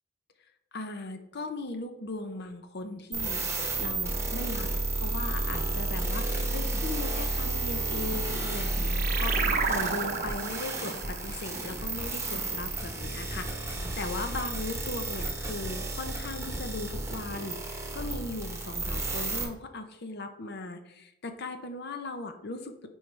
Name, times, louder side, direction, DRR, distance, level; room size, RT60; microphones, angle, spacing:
voice 1, 0.7-4.7 4.9-22.8, left 2 dB, 55° left, 7 dB, 0.7 m, -38 dB
sound 1, 3.1-19.4, right 2 dB, 15° right, 1.1 m, -32 dB
sound 2, 6.0-6.3 6.6-7.0 7.3-7.6 8.0-8.4 8.6-9.0 9.3-9.7 10.0-10.3 10.7-11.1 11.5-11.8 12.2-12.6, equal, 10° left, 1.1 m, -47 dB
sound 3, 8.1-13.1, right 5 dB, 45° right, 0.7 m, -33 dB
8.7 x 4.7 x 3.3 m, 0.87 s
head